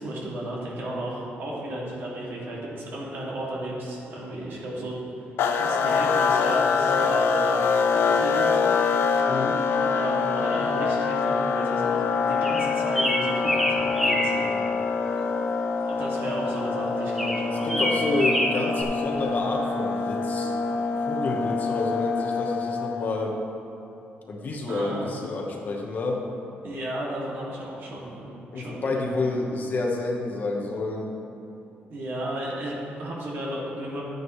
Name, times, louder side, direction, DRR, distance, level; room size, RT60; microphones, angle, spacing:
voice 1, 0.0-5.0 5.5-7.5 7.9-8.6 9.9-14.5 15.8-18.0 24.7-25.1 26.6-28.3 28.5-29.0 31.9-34.0, right 1 dB, 65° right, -5 dB, 2.4 m, -34 dB
a-sharp-powerchord, 5.4-23.2, left 5 dB, 75° left, 0.5 m, -25 dB
voice 2, 9.3-9.6 17.7-20.5 21.0-23.4 24.3-26.2 28.5-31.1, left 2 dB, 45° left, 0 dB, 1.2 m, -29 dB
sound 1, 12.4-14.4 17.2-18.8, equal, 5° right, 1.1 m, -26 dB
11.5 x 9.5 x 3.2 m, 2.8 s
cardioid pair, 115°, 4 cm